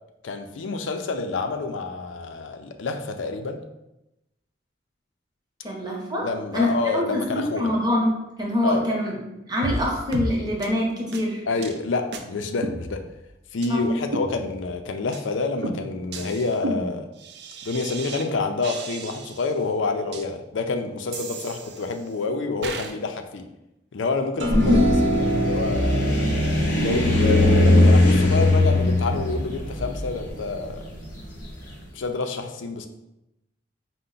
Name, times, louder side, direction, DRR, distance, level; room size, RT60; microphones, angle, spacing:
voice 1, 0.2-3.6 6.2-7.7 8.6-8.8 11.5-13.0 13.5-17.1 17.6-23.5 23.9-26.0 26.8-30.8 31.9-32.9, left 3 dB, 85° left, 6 dB, 0.5 m, -28 dB
voice 2, 5.6-6.3 6.5-9.1 9.5-11.4 13.7-13.9, left 1 dB, 20° right, -2 dB, 0.8 m, -25 dB
sound 1, 9.6-9.8 10.1-10.3 10.6-10.7 11.1-11.2 11.6-11.8 12.1-12.2 12.6-13.3 13.6-13.7 14.1-14.7 15.1-15.3 15.6-18.3 18.6-19.5 20.1-20.2 21.1-22.1 22.6-22.9, right 2 dB, 60° right, 0.4 m, -33 dB
sound 2, 24.4-31.5, left 1 dB, 40° left, 0.9 m, -20 dB
sound 3, 24.4-30.9, equal, 80° right, 0.8 m, -26 dB
5.4 x 2.1 x 3.8 m, 0.91 s
head